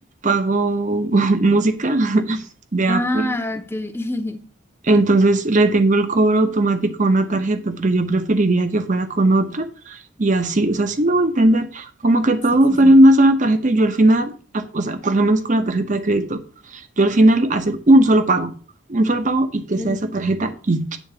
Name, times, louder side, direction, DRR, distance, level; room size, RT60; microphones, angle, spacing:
voice 1, 0.2-2.4 2.7-3.3 4.8-16.4 16.7-18.5 18.9-21.0, right 2 dB, 40° right, 0.9 m, -18 dB
voice 2, 2.9-4.4 12.7-12.9 19.7-20.0, left 1 dB, 10° left, 0.8 m, -26 dB
9.2 x 3.9 x 6.8 m
head